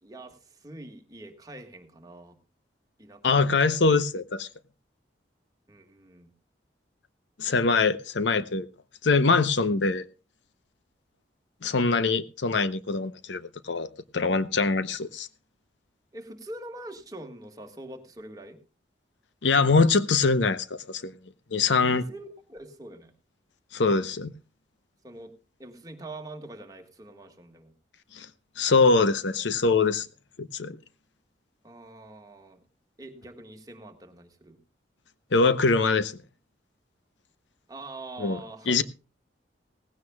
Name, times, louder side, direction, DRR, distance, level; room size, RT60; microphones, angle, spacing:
voice 1, 0.0-2.4 3.0-3.5 5.7-6.3 16.1-18.6 21.7-23.1 25.0-25.3 25.6-27.7 31.6-32.6 33.0-34.6 37.7-38.8, right 2 dB, 20° right, 1.7 m, -44 dB
voice 2, 3.2-4.5 7.4-8.7 9.0-10.0 11.6-13.4 13.7-13.9 14.1-15.3 19.4-21.1 21.5-22.0 23.7-24.3 28.2-28.3 28.6-30.1 30.4-30.8 35.3-36.1 38.2-38.4 38.7-38.8, left 4 dB, 80° left, 0.8 m, -23 dB
18.0 x 16.0 x 2.3 m
head